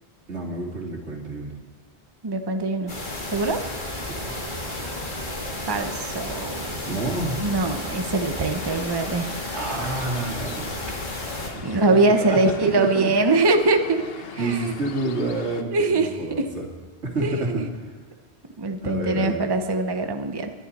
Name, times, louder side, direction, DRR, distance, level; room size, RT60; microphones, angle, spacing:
voice 1, 0.3-1.6 4.1-4.6 6.8-7.4 9.5-10.8 11.5-13.1 14.4-16.7 17.0-18.0 18.8-19.4, right 2 dB, 85° right, 0 dB, 2.6 m, -29 dB
voice 2, 2.2-2.9 3.3-3.6 5.7-6.8 7.4-9.3 11.6-14.1 14.3-14.7 15.7-16.4 17.2-17.7 18.6-20.5, right 2 dB, 25° right, 6 dB, 0.8 m, -23 dB
sound 1, 2.9-11.5, left 1 dB, 45° left, 2.2 m, -32 dB
sound 2, 8.5-15.6, left 6 dB, 65° left, 1.0 m, -41 dB
20.5 x 11.0 x 4.2 m, 1.3 s
omnidirectional pair, 1.1 m